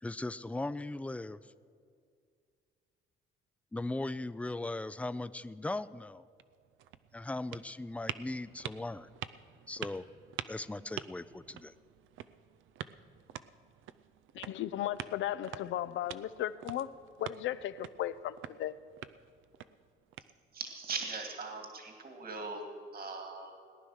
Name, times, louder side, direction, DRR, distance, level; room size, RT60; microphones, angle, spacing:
voice 1, 0.0-1.4 3.7-6.2 7.1-9.1 9.7-10.0 10.5-11.7, left 2 dB, 5° left, 0.4 m, -38 dB
sound 1, 6.2-20.8, right 11 dB, 80° right, 0.6 m, -47 dB
voice 2, 14.3-16.9 17.2-18.7, left 12 dB, 75° left, 0.6 m, -36 dB
voice 3, 20.5-23.5, right 4 dB, 50° right, 2.1 m, -40 dB
18.5 x 10.0 x 6.4 m
cardioid pair, 90°, 20 cm